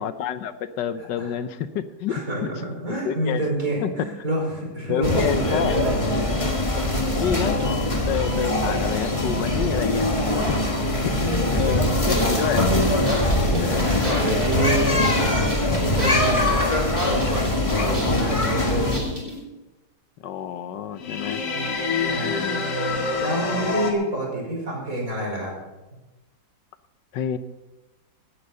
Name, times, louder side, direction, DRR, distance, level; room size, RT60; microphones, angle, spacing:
voice 1, 0.0-2.5 3.0-3.4 3.8-3.9 4.9-5.8 7.1-10.8 11.1-12.7 13.6-14.4 17.8-18.2 20.2-21.4 22.2-22.8 27.1-27.4, left 8 dB, 90° left, 12 dB, 1.5 m, -29 dB
voice 2, 1.0-1.3 2.1-6.1 6.8-7.8 10.7-12.3 13.3-15.3 15.8-16.8 17.1-19.0 21.3-21.4 22.1-22.4 23.2-25.5, right 1 dB, 50° right, -1 dB, 5.4 m, -28 dB
sound 1, 5.0-19.0, left 1 dB, 20° left, 1.4 m, -22 dB
sound 2, 11.6-19.4, equal, 30° right, 5.0 m, -35 dB
sound 3, 21.0-23.9, left 4 dB, 75° left, 2.6 m, -26 dB
17.5 x 10.0 x 5.5 m, 1.1 s
omnidirectional pair, 1.8 m